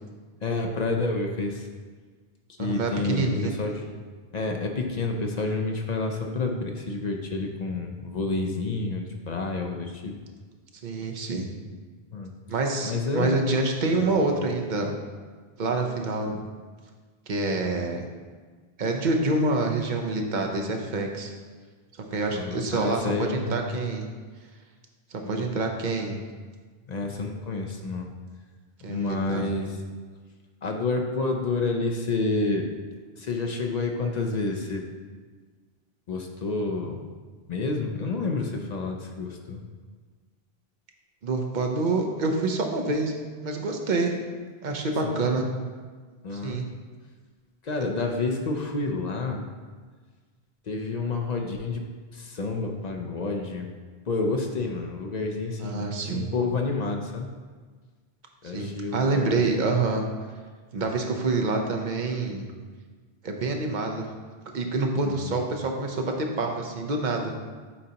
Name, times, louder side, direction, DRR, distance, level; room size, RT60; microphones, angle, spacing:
voice 1, 0.4-1.7 2.6-3.9 4.3-10.1 12.1-12.3 12.8-13.4 14.0-14.1 22.3-23.7 25.2-25.5 26.9-28.1 28.9-29.8 30.6-32.7 33.2-34.8 36.1-37.0 37.5-39.6 45.0-45.4 46.2-46.6 47.6-49.4 50.7-51.8 52.1-53.7 54.1-57.3 58.4-59.8 65.0-65.4, left 3 dB, 50° left, 2 dB, 0.6 m, -29 dB
voice 2, 2.6-3.5 10.8-11.5 12.5-15.0 15.6-16.5 17.3-18.1 18.8-21.3 22.1-24.0 25.1-26.2 28.8-29.4 41.2-43.1 43.4-44.2 44.6-45.4 46.3-46.6 55.6-56.2 58.4-60.0 60.7-62.4 63.2-64.1 64.5-67.3, right 3 dB, 50° right, 2 dB, 0.8 m, -27 dB
8.5 x 4.0 x 2.8 m, 1.5 s
omnidirectional pair, 1.1 m